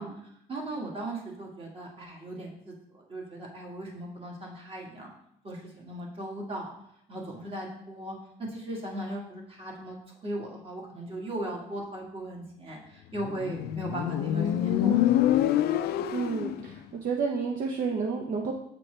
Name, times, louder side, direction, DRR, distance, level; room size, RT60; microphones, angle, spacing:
voice 1, 0.0-5.1 5.4-6.7 7.1-8.1 8.4-15.4, right 1 dB, 35° right, -1 dB, 1.7 m, -38 dB
Motorcycle, 13.2-16.7, left 11 dB, 70° left, 0.4 m, -26 dB
voice 2, 16.0-18.5, right 5 dB, 55° right, 1 dB, 0.7 m, -31 dB
7.6 x 4.1 x 3.3 m, 0.75 s
cardioid pair, 110°, 17 cm